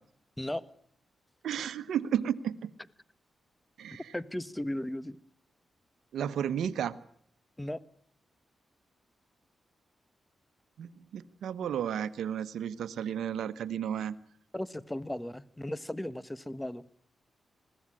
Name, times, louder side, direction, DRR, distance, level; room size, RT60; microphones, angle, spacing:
voice 1, 1.4-2.6 3.8-4.0 6.1-6.9 10.8-14.1, right 9 dB, 85° right, 12 dB, 1.1 m, -33 dB
voice 2, 4.1-5.2 7.6-7.8 14.5-16.8, left 1 dB, 10° left, 16 dB, 1.4 m, -36 dB
21.0 x 16.0 x 9.9 m, 0.63 s
cardioid pair, 55°, 0 cm